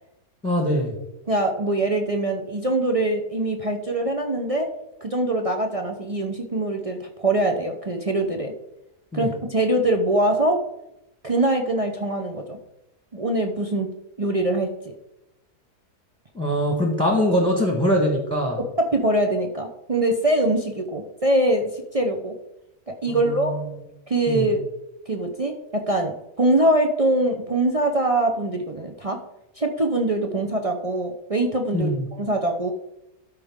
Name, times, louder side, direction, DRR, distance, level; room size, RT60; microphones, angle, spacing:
voice 1, 0.4-1.0 9.1-9.3 16.3-18.6 23.1-23.8 24.3-24.5 31.7-32.1, equal, 5° left, 2 dB, 1.2 m, -23 dB
voice 2, 1.3-4.7 5.0-8.5 9.1-10.6 11.2-12.6 13.1-13.9 14.2-14.7 18.8-22.3 22.9-23.6 24.1-24.6 25.1-29.2 29.6-32.7, right 1 dB, 50° right, 3 dB, 0.4 m, -23 dB
12.5 x 5.1 x 3.6 m, 0.89 s
omnidirectional pair, 1.7 m